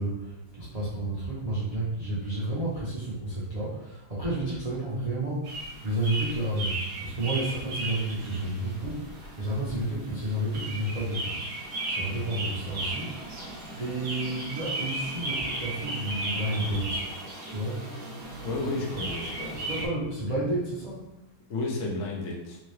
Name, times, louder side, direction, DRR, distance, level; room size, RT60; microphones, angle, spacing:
voice 1, 0.0-11.3 11.8-13.5 13.8-17.0 17.4-17.9 18.6-19.0 19.5-21.0, right 1 dB, 75° right, -8 dB, 0.3 m, -31 dB
sound 1, 5.4-19.9, right 2 dB, 60° right, 1.0 m, -36 dB
voice 2, 18.4-19.7 21.5-22.6, left 2 dB, 60° left, -2 dB, 0.7 m, -32 dB
3.6 x 2.8 x 3.2 m, 0.86 s
omnidirectional pair, 2.2 m